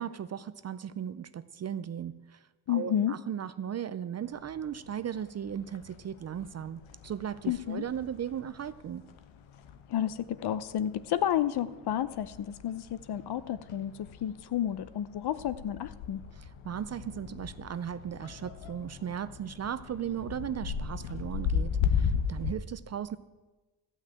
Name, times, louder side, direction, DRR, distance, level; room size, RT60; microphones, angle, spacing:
voice 1, 0.0-9.1 16.3-23.2, right 9 dB, 35° right, 14 dB, 0.4 m, -37 dB
voice 2, 2.7-3.1 7.5-7.8 9.9-16.2, left 10 dB, 55° left, 15 dB, 0.7 m, -31 dB
sound 1, 4.2-22.5, left 7 dB, 85° left, 1.0 m, -37 dB
14.0 x 6.2 x 8.8 m, 1.2 s
cardioid pair, 120°, 46 cm